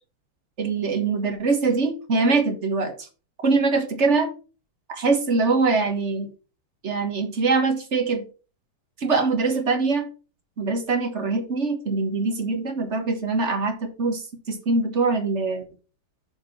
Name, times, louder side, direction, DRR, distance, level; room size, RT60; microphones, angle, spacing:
voice 1, 0.6-2.9 3.4-4.3 4.9-6.3 6.8-8.2 9.0-10.1 10.6-15.6, right 4 dB, 35° right, 5 dB, 1.5 m, -23 dB
6.7 x 4.5 x 5.8 m, 0.35 s
omnidirectional pair, 2.3 m